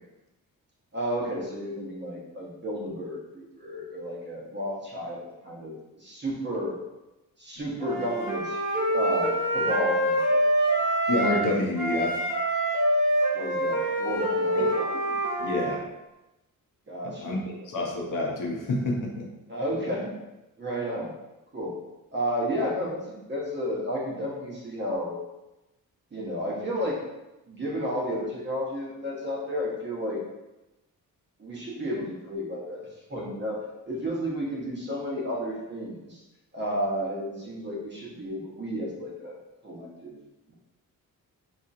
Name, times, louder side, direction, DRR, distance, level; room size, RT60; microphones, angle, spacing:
voice 1, 0.9-6.8 7.4-8.6 8.9-10.4 13.3-15.0 16.9-17.4 19.5-20.2 20.6-21.1 21.5-21.8 22.1-25.2 26.1-27.0 27.5-30.2 31.4-33.6 33.8-36.2 36.5-39.4 39.6-40.2 40.5-40.6, equal, 30° right, -4 dB, 0.9 m, -32 dB
Wind instrument woodwind instrument, 7.8-11.5 11.7-15.7, right 1 dB, 10° right, 1.2 m, -26 dB
voice 2, 11.1-12.2 14.5-14.7 15.4-15.8 17.0-19.3, left 2 dB, 65° left, 0 dB, 0.7 m, -28 dB
4.0 x 2.9 x 2.4 m, 0.99 s
wide cardioid pair, 145°, 35 cm